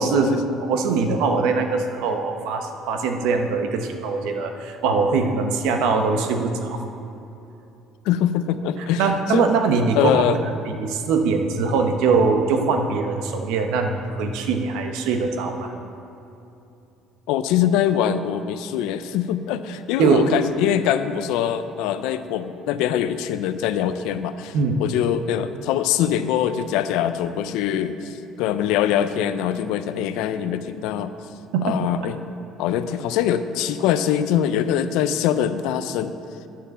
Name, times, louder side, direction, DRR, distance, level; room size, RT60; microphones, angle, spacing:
voice 1, 0.0-6.8 9.0-10.2 10.7-15.7 20.0-20.3 24.5-24.8 31.5-31.7, right 4 dB, 80° right, 5 dB, 1.0 m, -22 dB
voice 2, 8.1-9.0 9.3-9.4 10.0-10.4 17.3-31.1 31.6-32.2 32.6-36.1, left 10 dB, 80° left, 11 dB, 0.5 m, -23 dB
9.3 x 6.7 x 6.9 m, 2.8 s
cardioid pair, 175°, 0 cm